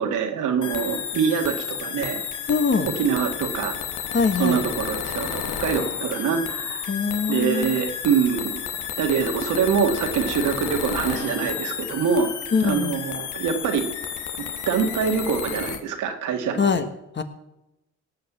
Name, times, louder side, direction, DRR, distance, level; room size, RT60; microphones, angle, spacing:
voice 1, 0.0-2.2 2.8-3.7 4.4-6.9 7.3-8.6 9.0-12.3 12.6-13.9 14.7-16.7, right 6 dB, 85° right, 4 dB, 2.0 m, -24 dB
sound 1, 0.6-15.8, left 8 dB, 75° left, 1.5 m, -31 dB
voice 2, 2.5-2.9 4.1-4.6 6.9-7.8 12.5-13.0 16.6-16.9 17.1-17.2, left 5 dB, 35° left, 9 dB, 1.5 m, -23 dB
18.0 x 6.8 x 7.4 m, 0.89 s
cardioid pair, 90°, 30 cm